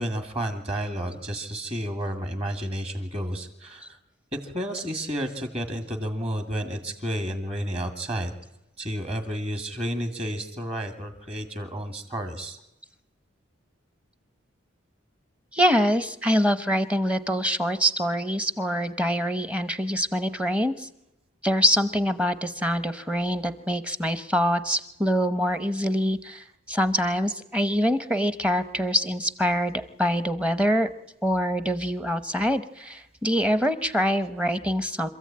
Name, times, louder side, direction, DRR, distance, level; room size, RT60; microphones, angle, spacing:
voice 1, 0.0-4.0 4.4-8.3 8.8-12.6, equal, 30° right, 6 dB, 2.1 m, -31 dB
voice 2, 15.5-20.9 21.4-30.9 31.2-35.1, equal, 5° right, 12 dB, 0.8 m, -25 dB
26.0 x 14.0 x 8.7 m, 0.97 s
head